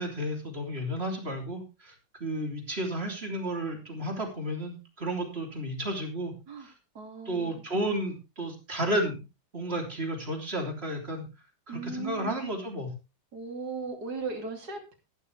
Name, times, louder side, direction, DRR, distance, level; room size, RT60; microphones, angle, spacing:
voice 1, 0.0-1.9 2.2-6.3 6.6-6.7 7.3-9.2 9.5-11.2 11.7-12.9, right 1 dB, 35° right, 2 dB, 3.7 m, -32 dB
voice 2, 7.0-7.6 11.7-12.4 13.3-14.9, right 4 dB, 65° right, 4 dB, 3.5 m, -37 dB
14.0 x 12.0 x 3.4 m, 0.29 s
omnidirectional pair, 1.8 m